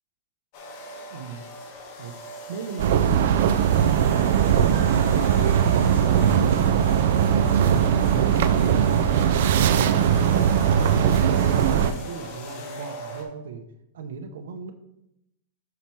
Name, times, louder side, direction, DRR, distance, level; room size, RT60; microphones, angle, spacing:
sound 1, 0.5-13.2, left 1 dB, 40° left, 1.4 m, -38 dB
voice 1, 1.1-1.4 2.0-2.1 2.5-6.8 7.2-10.4 10.7-13.6 13.9-14.7, right 5 dB, 80° right, 5 dB, 0.8 m, -35 dB
sound 2, 2.8-11.9, right 9 dB, 55° right, 0.4 m, -20 dB
5.8 x 4.6 x 5.7 m, 0.83 s
supercardioid pair, 170°, 0 cm